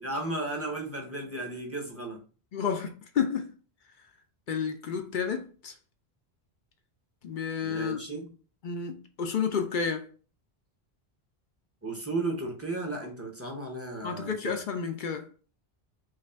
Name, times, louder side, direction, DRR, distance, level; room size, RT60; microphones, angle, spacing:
voice 1, 0.0-2.2 7.6-8.3 11.8-14.6, right 2 dB, 15° right, 0.7 m, -34 dB
voice 2, 2.5-3.5 4.5-5.7 7.2-8.0 8.6-10.1 14.0-15.3, left 6 dB, 60° left, 0.6 m, -31 dB
3.1 x 2.5 x 4.2 m
omnidirectional pair, 1.1 m